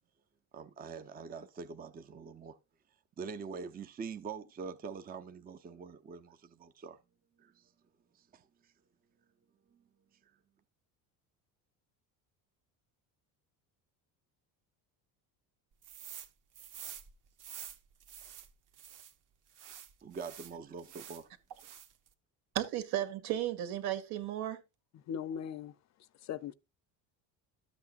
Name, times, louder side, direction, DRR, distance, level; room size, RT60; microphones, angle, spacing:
voice 1, 0.5-2.6 3.2-7.0 7.4-7.7 8.1-8.4 20.0-21.3, right 5 dB, 25° right, 0.7 m, -44 dB
sound 1, 15.8-16.3 16.5-19.1 19.5-21.2 21.6-22.1, right 10 dB, 50° right, 1.4 m, -48 dB
voice 2, 22.5-24.6, right 12 dB, 70° right, 2.0 m, -34 dB
voice 3, 25.1-25.7 26.2-26.5, left 8 dB, 45° left, 0.6 m, -38 dB
12.5 x 8.1 x 2.5 m
cardioid pair, 150°, 39 cm